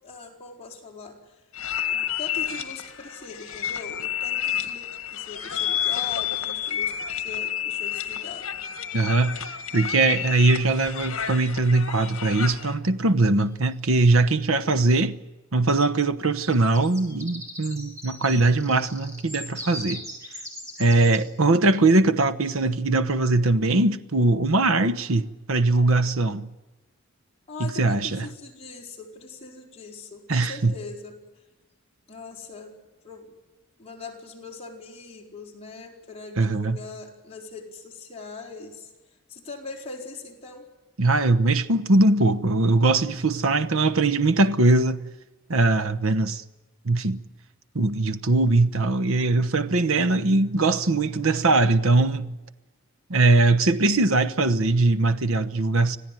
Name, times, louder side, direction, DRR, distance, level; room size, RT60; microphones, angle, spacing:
voice 1, 0.0-1.4 1.9-8.5 27.5-31.2 32.1-32.8 33.0-33.3 33.8-40.7, left 4 dB, 25° left, 4.6 m, -41 dB
sound 1, 1.5-12.7, left 9 dB, 70° left, 1.8 m, -30 dB
voice 2, 8.9-9.4 9.7-15.2 15.5-20.0 20.8-26.5 27.6-28.3 30.3-30.7 36.4-36.8 41.0-45.1 45.5-46.4 46.8-47.2 47.7-52.4 53.1-56.0, right 2 dB, 70° right, 1.0 m, -21 dB
sound 2, 11.1-11.7 13.4-13.5 13.7-14.0 16.3-21.2, left 1 dB, 15° right, 5.5 m, -40 dB
26.5 x 16.5 x 9.2 m
head